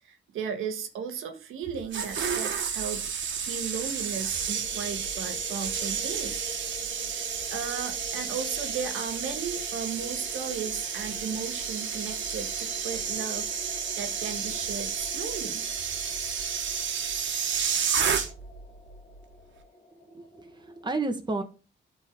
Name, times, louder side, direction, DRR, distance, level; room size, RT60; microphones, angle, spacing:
voice 1, 0.0-6.5 7.2-15.6, right 6 dB, 90° right, 7 dB, 1.4 m, -36 dB
sound 1, 1.7-18.6 18.9-19.2, right 7 dB, 65° right, 1.5 m, -31 dB
sound 2, 4.0-20.9, left 3 dB, 30° left, 1.4 m, -48 dB
voice 2, 20.0-21.4, right 3 dB, 20° right, 5 dB, 1.5 m, -32 dB
11.5 x 4.0 x 3.8 m, 0.33 s
cardioid pair, 85°, 21 cm